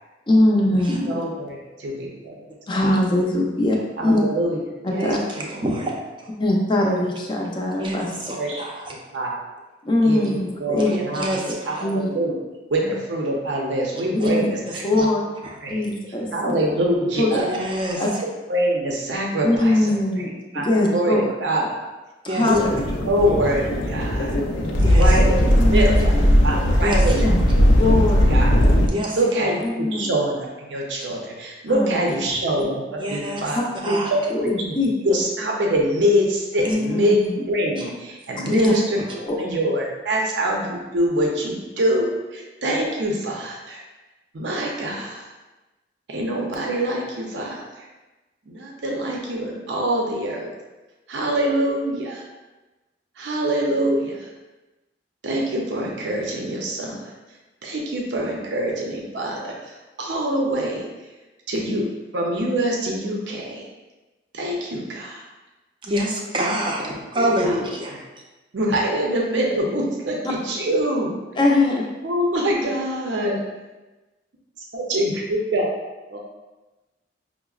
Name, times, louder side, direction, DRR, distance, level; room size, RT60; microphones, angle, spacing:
voice 1, 0.3-1.2 2.7-4.2 4.8-5.2 6.4-8.1 9.8-10.9 11.5-11.6 11.8-12.1 12.8-12.9 14.1-14.5 14.8-15.2 15.7-16.5 17.2-17.3 18.0-18.1 19.4-21.2 22.2-22.7 24.5-24.8 25.6-26.4 27.2-27.3 27.7-28.4 29.6-30.1 31.7-32.2 33.5-34.0 34.3-34.9 36.6-37.4 38.5-38.7 39.3-39.4 71.4-71.9, left 2 dB, 25° left, -1 dB, 0.5 m, -22 dB
voice 2, 1.1-2.4 2.7-2.9 4.0-4.6 4.9-5.1 6.8-7.0 8.3-8.6 9.1-9.3 10.0-11.4 11.7-12.4 12.7-14.8 15.6-15.9 16.3-17.6 18.2-19.9 20.5-21.7 22.4-22.8 23.0-24.3 25.0-26.1 26.4-27.6 28.3-28.5 29.1-33.6 34.4-37.2 37.5-42.1 42.3-43.8 44.3-45.2 46.1-47.9 48.5-50.5 51.1-52.2 53.2-54.3 55.2-57.1 57.6-60.8 61.5-61.9 62.1-63.6 64.3-65.2 66.8-67.5 68.5-71.2 72.0-73.4 74.7-75.7 76.1-76.2, right 1 dB, 70° right, -1 dB, 0.6 m, -24 dB
voice 3, 5.0-5.9 7.8-8.9 11.1-11.8 14.2-14.3 15.0-15.1 15.4-15.5 17.4-18.1 22.3-22.5 24.8-25.1 26.8-27.4 28.9-29.2 33.0-33.4 33.8-34.1 37.8-37.9 38.5-38.6 65.8-67.9, equal, 25° right, -2 dB, 0.5 m, -27 dB
sound 1, 22.5-28.9, equal, 90° left, 0.5 m, -18 dB
5.7 x 2.0 x 2.3 m, 1.1 s
head